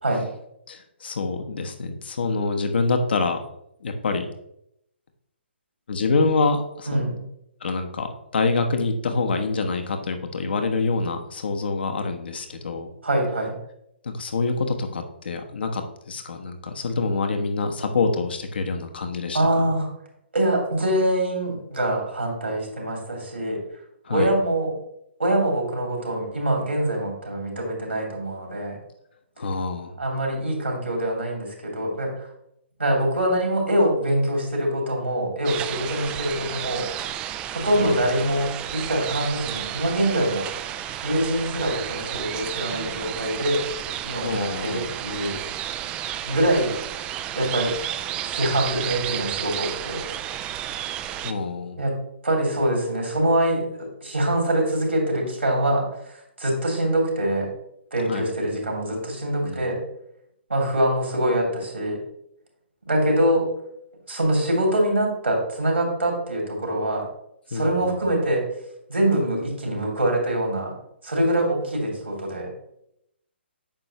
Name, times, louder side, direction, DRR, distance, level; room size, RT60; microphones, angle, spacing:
voice 1, 0.7-3.4 3.8-4.3 5.9-7.1 7.6-8.1 8.3-12.9 14.0-19.7 24.0-24.3 29.4-30.0 37.8-38.0 44.2-44.9 51.2-51.8 58.1-58.3 59.4-59.6 67.5-67.9, left 3 dB, 55° left, 6 dB, 1.1 m, -26 dB
voice 2, 6.9-7.2 13.0-13.5 19.3-19.9 20.3-23.6 24.1-24.7 25.2-28.8 30.0-32.3 32.8-36.9 37.5-40.4 41.0-43.6 44.0-45.4 46.2-46.8 47.3-47.7 48.2-50.1 51.8-51.9 52.2-55.9 56.4-57.5 57.9-59.8 60.5-62.0 62.9-63.5 64.1-67.1 67.5-68.4 68.9-70.7 71.0-72.5, right 1 dB, 80° right, 0 dB, 3.0 m, -24 dB
sound 1, 35.4-51.3, right 11 dB, 15° right, 0.3 m, -32 dB
8.7 x 6.3 x 3.0 m, 0.77 s
figure-of-eight pair, 130°, 6 cm